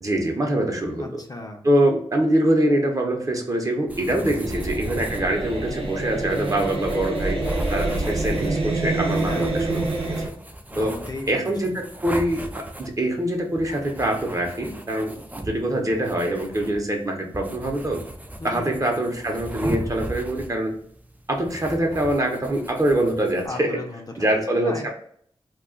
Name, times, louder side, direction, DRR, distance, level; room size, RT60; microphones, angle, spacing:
voice 1, 0.0-1.2 1.6-7.4 7.7-10.2 10.8-11.0 11.3-15.2 15.4-18.0 18.4-20.7 21.3-23.8 24.2-24.9, right 1 dB, 35° right, 1 dB, 0.8 m, -24 dB
voice 2, 1.0-1.6 9.0-9.5 10.7-11.5 18.4-18.9 23.5-24.9, left 2 dB, 40° left, 2 dB, 0.5 m, -36 dB
sound 1, 3.9-23.5, right 1 dB, 15° right, 0.4 m, -38 dB
sound 2, 4.4-10.3, right 2 dB, 70° right, 0.8 m, -27 dB
2.3 x 2.3 x 3.6 m, 0.62 s
cardioid pair, 60°, 10 cm